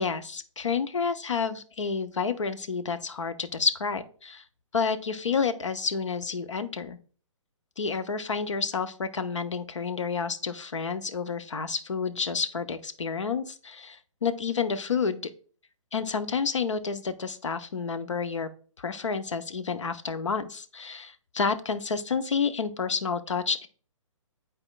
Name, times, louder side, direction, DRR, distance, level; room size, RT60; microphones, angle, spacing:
voice 1, 0.0-4.4 4.7-7.0 7.8-15.3 15.9-18.5 18.8-23.7, left 5 dB, 65° left, 10 dB, 0.7 m, -29 dB
10.5 x 4.3 x 2.4 m, 0.42 s
figure-of-eight pair, 130°, 17 cm